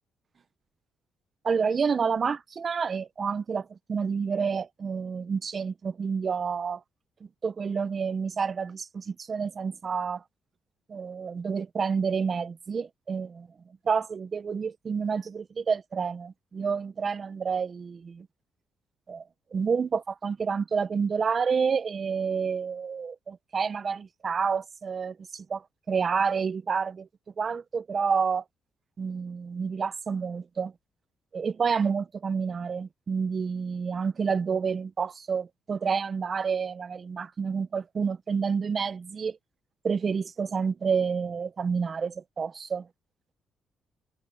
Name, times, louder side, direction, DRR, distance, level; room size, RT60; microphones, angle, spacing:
voice 1, 1.4-6.8 7.4-10.2 10.9-13.5 13.8-18.3 19.1-19.2 19.5-25.6 25.9-27.1 27.4-28.4 29.0-30.7 31.3-39.4 39.8-42.9, right 5 dB, 40° right, 0.9 m, -29 dB
cardioid pair, 90°, 0 cm